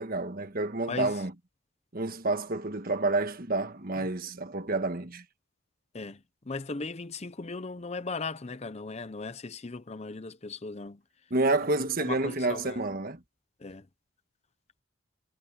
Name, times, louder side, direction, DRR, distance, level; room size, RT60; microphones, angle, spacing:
voice 1, 0.0-1.3 1.9-5.2 11.3-13.2, right 2 dB, 40° right, 1.4 m, -29 dB
voice 2, 0.9-1.2 4.0-4.1 5.9-11.0 11.8-12.8 13.6-13.9, left 3 dB, 30° left, 0.6 m, -38 dB
head